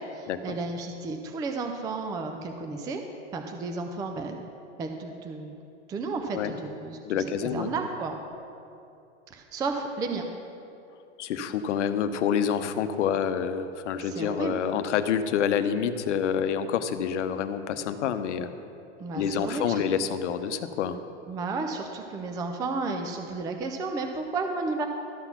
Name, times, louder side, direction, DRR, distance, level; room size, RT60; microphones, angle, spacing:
voice 1, 0.0-3.0 3.3-4.5 4.8-5.6 5.9-8.2 9.3-10.2 14.0-14.6 19.0-19.8 21.3-24.9, right 3 dB, 10° right, 4 dB, 0.3 m, -33 dB
voice 2, 7.0-7.7 11.2-18.5 19.1-21.0, left 8 dB, 75° left, 10 dB, 0.8 m, -27 dB
12.5 x 5.9 x 5.8 m, 2.7 s
hypercardioid pair, 125°, 36 cm